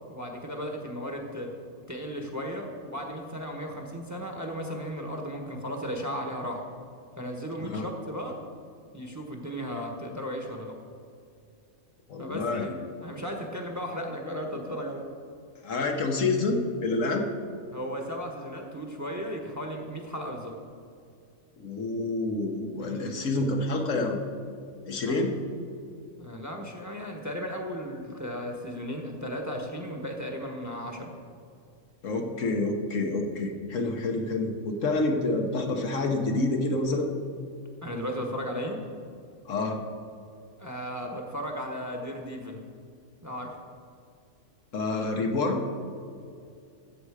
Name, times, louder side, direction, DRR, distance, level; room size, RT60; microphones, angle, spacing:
voice 1, 0.1-1.5 1.9-6.6 7.2-8.4 8.9-10.8 12.2-15.0 17.7-20.6 22.8-23.2 25.1-25.2 26.2-31.1 37.8-38.8 40.6-42.6 43.2-43.6, equal, 15° right, 2 dB, 1.1 m, -35 dB
voice 2, 12.1-12.7 15.6-17.2 21.6-24.2 24.9-25.3 32.0-37.1 39.5-39.8 44.7-45.6, left 2 dB, 70° left, 3 dB, 1.4 m, -28 dB
14.0 x 7.7 x 4.9 m, 2.4 s
omnidirectional pair, 1.4 m